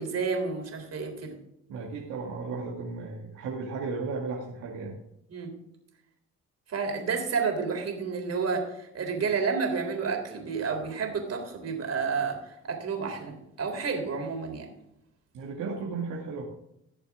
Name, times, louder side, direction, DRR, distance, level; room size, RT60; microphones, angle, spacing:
voice 1, 0.0-1.4 5.3-5.6 6.7-14.7, right 5 dB, 55° right, 3 dB, 3.8 m, -30 dB
voice 2, 1.7-5.0 15.3-16.4, right 4 dB, 85° right, -2 dB, 2.2 m, -35 dB
18.5 x 7.0 x 3.7 m, 0.82 s
cardioid pair, 90°, 30 cm